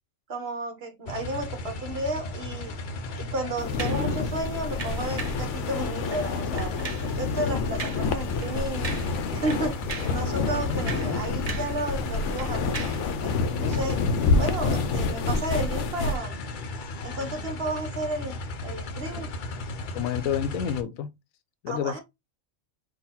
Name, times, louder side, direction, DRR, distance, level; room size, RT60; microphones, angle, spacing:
voice 1, 0.3-2.7 3.2-6.7 7.0-8.9 9.3-12.8 13.2-14.0 14.4-16.4 17.0-19.3 21.7-22.0, right 2 dB, 50° right, 1.2 m, -33 dB
sound 1, 1.1-20.8, left 2 dB, 50° left, 0.6 m, -36 dB
sound 2, 3.6-16.2, left 4 dB, 70° left, 0.9 m, -28 dB
sound 3, 3.8-4.1 4.8-5.5 6.0-6.3 6.6-7.1 7.8-8.1 8.4-8.5 8.8-9.2 9.5-10.2 10.7-11.8 12.1-13.1 13.7-13.9, right 5 dB, 35° right, 0.7 m, -38 dB
voice 2, 19.9-21.1 21.6-22.0, left 9 dB, 90° left, 1.0 m, -29 dB
4.0 x 2.5 x 4.1 m
omnidirectional pair, 1.4 m